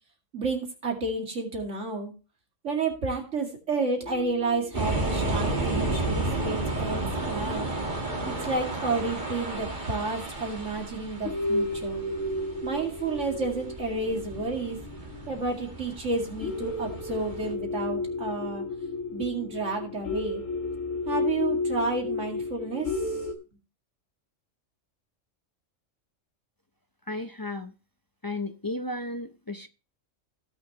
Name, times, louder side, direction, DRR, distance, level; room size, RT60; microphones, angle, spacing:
voice 1, 0.3-2.1 2.6-7.7 8.3-12.0 12.6-14.8 15.3-18.6 19.1-20.4 21.1-23.2, right 3 dB, 65° right, 2.5 m, -31 dB
sound 1, 4.0-8.0 8.4-8.5 9.6-9.7 10.2-10.3 10.8-11.0 11.2-23.3, left 2 dB, 75° left, 1.5 m, -33 dB
sound 2, 4.7-17.5, right 2 dB, 35° right, 2.4 m, -32 dB
voice 2, 27.1-27.7 28.2-29.7, left 2 dB, 30° left, 0.4 m, -34 dB
17.0 x 6.2 x 2.9 m
omnidirectional pair, 1.4 m